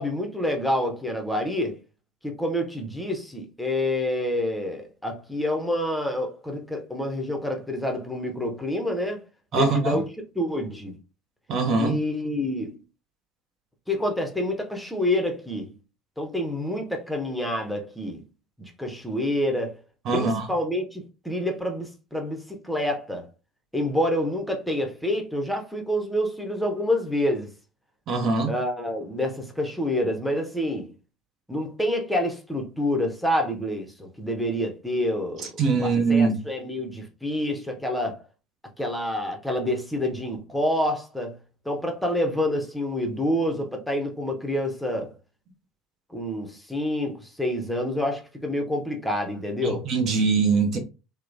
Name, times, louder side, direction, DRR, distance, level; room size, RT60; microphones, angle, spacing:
voice 1, 0.0-1.8 2.2-9.2 9.5-10.1 10.3-11.0 11.8-12.8 13.9-15.7 16.2-18.2 18.6-19.8 20.1-23.3 23.7-27.5 28.4-30.9 31.5-38.2 38.8-41.4 41.6-45.1 46.1-49.9, left 1 dB, ahead, 0.7 m, -27 dB
voice 2, 9.5-10.0 11.5-12.0 20.1-20.5 28.1-28.5 35.6-36.4 49.6-50.8, right 4 dB, 45° right, 0.6 m, -22 dB
2.9 x 2.1 x 2.4 m
figure-of-eight pair, 65°, 0 cm